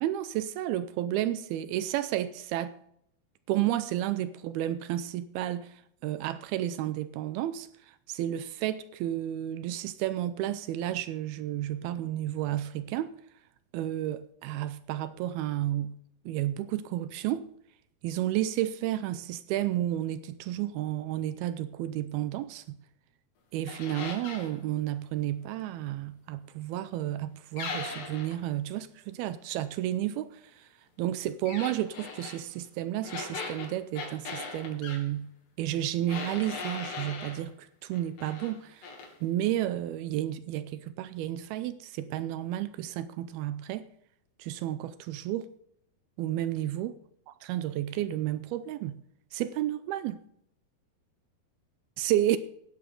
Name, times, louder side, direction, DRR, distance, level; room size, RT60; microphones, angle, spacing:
voice 1, 0.0-2.8 3.5-13.1 13.7-16.0 16.3-17.5 18.0-22.8 23.5-30.7 31.0-35.3 35.6-38.9 39.2-43.8 44.4-45.5 46.2-47.0 47.5-49.0 49.3-50.2 52.0-52.4, right 13 dB, 80° right, 2.3 m, -32 dB
sound 1, 23.7-24.5 27.6-28.4 31.5-32.4 33.0-35.0 36.1-37.4 37.9-38.5 38.8-39.1, left 4 dB, 85° left, 4.7 m, -39 dB
17.5 x 9.9 x 3.8 m
omnidirectional pair, 4.7 m